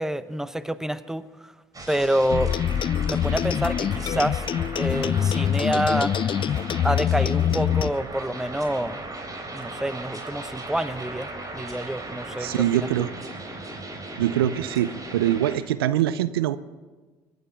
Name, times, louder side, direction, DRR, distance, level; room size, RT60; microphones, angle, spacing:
voice 1, 0.0-1.5 1.9-2.5 3.0-4.4 4.8-6.1 6.8-9.0 9.5-12.9, right 1 dB, 5° right, 14 dB, 0.9 m, -27 dB
sound 1, 1.7-15.6, right 2 dB, 30° right, 3.9 m, -37 dB
sound 2, 2.3-7.9, left 9 dB, 45° left, 0.4 m, -24 dB
voice 2, 12.4-13.1 14.2-16.6, right 12 dB, 90° right, 16 dB, 0.5 m, -23 dB
24.0 x 9.5 x 5.8 m, 1.3 s
hypercardioid pair, 55°, 12 cm